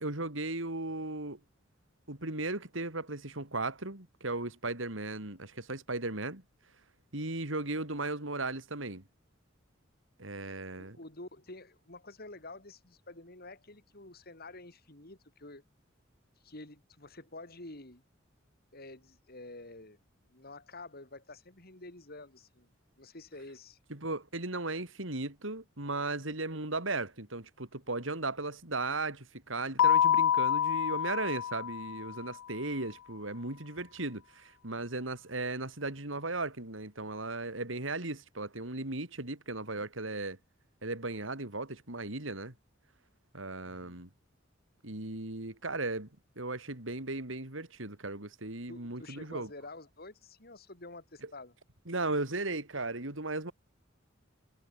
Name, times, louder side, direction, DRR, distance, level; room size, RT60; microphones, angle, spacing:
voice 1, 0.0-1.4 2.1-6.4 7.1-9.0 10.2-11.0 23.9-40.4 40.8-42.5 43.3-44.1 44.8-46.1 46.4-49.5 51.9-53.5, right 2 dB, 75° right, 3.8 m, -36 dB
voice 2, 10.7-15.6 16.4-18.0 18.7-20.0 20.2-22.7 23.0-23.8 43.6-44.0 48.7-51.5, left 2 dB, 50° left, 4.8 m, -49 dB
Keyboard (musical), 29.8-32.3, left 9 dB, 70° left, 0.3 m, -27 dB
head